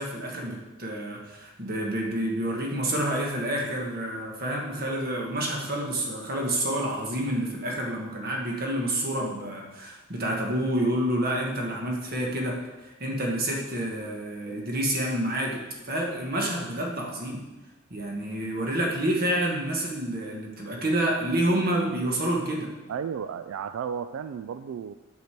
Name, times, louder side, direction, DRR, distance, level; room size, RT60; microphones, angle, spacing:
voice 1, 0.0-12.6 12.8-17.4 17.9-22.7, right 1 dB, 45° right, -1 dB, 1.5 m, -28 dB
voice 2, 22.9-24.9, right 7 dB, 90° right, 11 dB, 0.3 m, -33 dB
8.1 x 6.7 x 4.5 m, 1.1 s
head